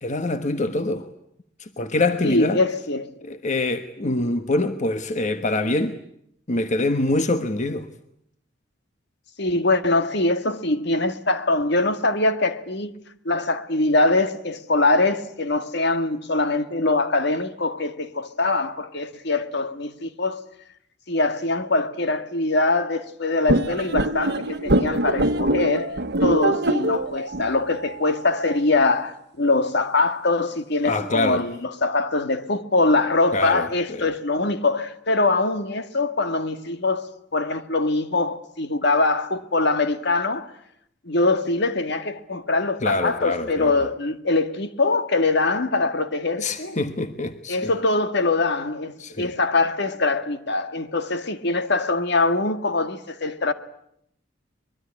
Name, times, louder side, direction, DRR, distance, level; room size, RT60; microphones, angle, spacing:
voice 1, 0.0-1.1 1.6-2.6 3.2-6.0 6.5-7.9 30.8-31.4 33.3-34.1 42.8-43.7 46.4-47.7 49.0-49.3, left 2 dB, 40° left, 1.3 m, -25 dB
voice 2, 2.2-3.1 4.2-4.3 9.4-12.9 13.3-20.4 21.1-25.9 26.2-37.0 37.3-40.5 41.1-46.8 47.5-53.5, left 2 dB, 60° left, 1.8 m, -23 dB
sound 1, 23.5-28.6, right 1 dB, 60° right, 1.3 m, -24 dB
24.0 x 22.5 x 9.9 m
head